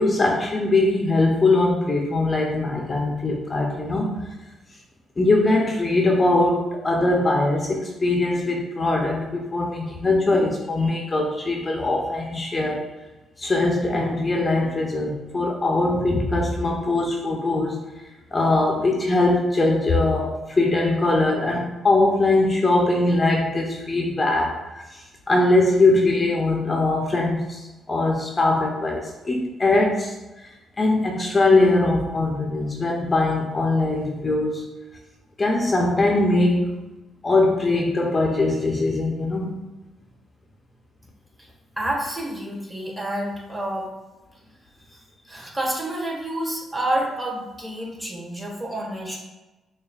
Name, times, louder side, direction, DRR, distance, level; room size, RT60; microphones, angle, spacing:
voice 1, 0.0-4.2 5.2-12.8 13.4-17.8 18.3-30.1 30.8-34.7 35.4-36.8 37.2-39.6, left 2 dB, 25° left, 0 dB, 0.5 m, -21 dB
voice 2, 41.8-43.9 44.9-49.2, right 1 dB, 20° right, -2 dB, 1.3 m, -29 dB
6.6 x 2.3 x 2.3 m, 1.1 s
cardioid pair, 95°, 0 cm